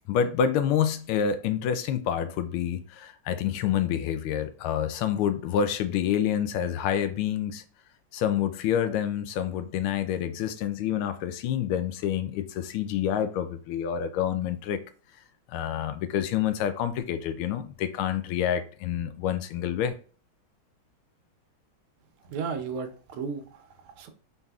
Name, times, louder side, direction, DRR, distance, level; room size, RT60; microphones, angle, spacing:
voice 1, 0.1-7.6 8.1-14.8 15.5-19.9, left 9 dB, 90° left, 1.4 m, -28 dB
voice 2, 22.2-24.1, right 5 dB, 90° right, 1.6 m, -35 dB
4.0 x 4.0 x 2.3 m
omnidirectional pair, 2.3 m